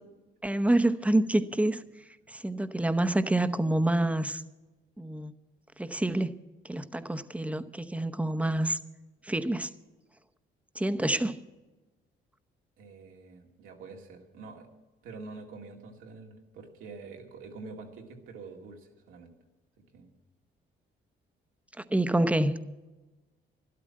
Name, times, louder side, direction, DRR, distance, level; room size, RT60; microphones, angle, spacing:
voice 1, 0.4-1.8 2.3-4.4 5.0-5.3 5.8-6.3 6.6-8.8 9.2-9.7 10.8-11.4 21.8-22.6, right 1 dB, 5° right, 11 dB, 0.8 m, -27 dB
voice 2, 12.8-14.7 15.0-19.3 19.8-20.1, right 4 dB, 90° right, 2 dB, 2.2 m, -46 dB
12.5 x 12.0 x 7.5 m, 1.2 s
cardioid pair, 90°, 20 cm